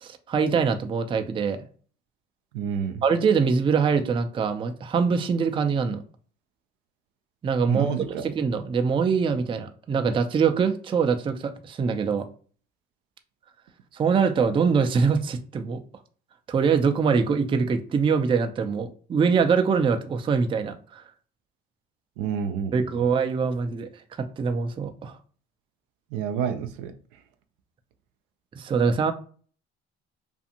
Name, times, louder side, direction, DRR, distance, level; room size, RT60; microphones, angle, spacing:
voice 1, 0.0-1.7 3.0-6.0 7.4-12.3 13.9-15.8 16.5-21.0 22.7-23.9 24.2-25.2 28.5-29.1, right 5 dB, 20° right, 0.3 m, -23 dB
voice 2, 2.5-3.0 7.7-8.2 22.2-23.1 26.1-26.9, right 8 dB, 80° right, 0.4 m, -29 dB
2.5 x 2.4 x 2.7 m
hypercardioid pair, 65°, 29 cm